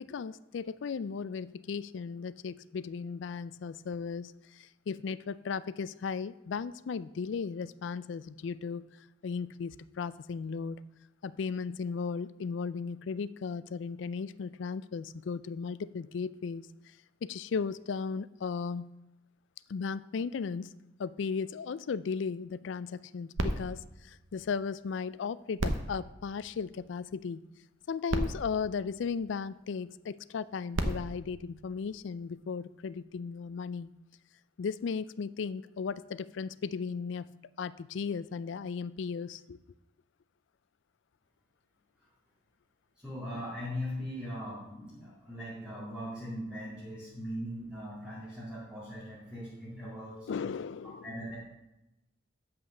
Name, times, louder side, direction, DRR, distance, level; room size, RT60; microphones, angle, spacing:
voice 1, 0.0-8.8 9.2-10.8 11.2-16.9 17.2-18.9 19.7-20.7 21.0-27.4 27.9-33.9 34.6-37.3 37.6-39.6 50.3-51.1, left 5 dB, 65° left, 17 dB, 0.4 m, -36 dB
sound 1, 23.4-25.0 25.5-27.1 27.8-27.9 28.1-29.7 30.5-32.3 33.0-33.1, right 1 dB, 75° right, 0.9 m, -36 dB
voice 2, 43.0-50.3 51.0-51.4, equal, 5° right, -8 dB, 2.2 m, -40 dB
8.2 x 5.6 x 6.4 m, 0.94 s
head